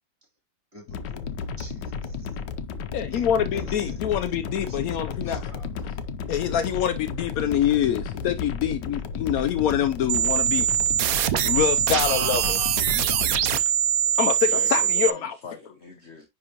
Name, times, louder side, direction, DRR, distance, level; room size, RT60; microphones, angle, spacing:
voice 1, 0.7-2.3 3.1-5.9, right 1 dB, 15° right, 3.1 m, -49 dB
sound 1, 0.9-13.6, left 5 dB, 70° left, 1.3 m, -33 dB
voice 2, 2.9-5.4 6.3-10.7 11.4-12.6 14.2-15.3, left 9 dB, 85° left, 0.7 m, -25 dB
sound 2, 10.1-15.1, right 11 dB, 85° right, 0.7 m, -23 dB
voice 3, 13.6-14.1 14.5-16.3, left 3 dB, 45° left, 1.0 m, -41 dB
10.0 x 3.6 x 2.9 m
omnidirectional pair, 2.1 m